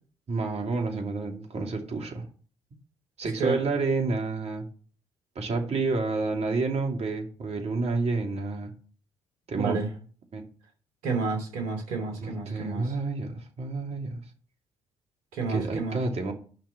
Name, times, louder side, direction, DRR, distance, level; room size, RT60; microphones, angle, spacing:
voice 1, 0.3-2.2 3.2-4.7 5.3-8.7 9.5-9.9 10.3-10.4 12.2-14.2 15.5-16.3, right 3 dB, 55° right, 2.7 m, -29 dB
voice 2, 9.5-9.9 11.0-12.9 15.3-16.0, right 4 dB, 80° right, 3.0 m, -30 dB
10.5 x 5.9 x 5.9 m
hypercardioid pair, 50°, 13 cm